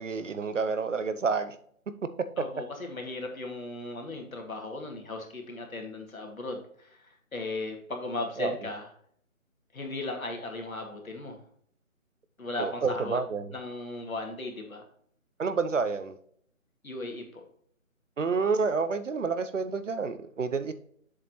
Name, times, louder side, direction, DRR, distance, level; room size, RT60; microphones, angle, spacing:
voice 1, 0.0-1.6 8.4-8.6 12.6-13.5 15.4-16.2 18.2-20.7, right 4 dB, 65° right, 13 dB, 0.8 m, -29 dB
voice 2, 2.4-8.9 9.7-11.4 12.4-13.2 13.5-14.8 16.8-17.4, left 2 dB, 80° left, 3 dB, 2.3 m, -37 dB
7.4 x 6.6 x 3.0 m, 0.63 s
figure-of-eight pair, 170°, 41 cm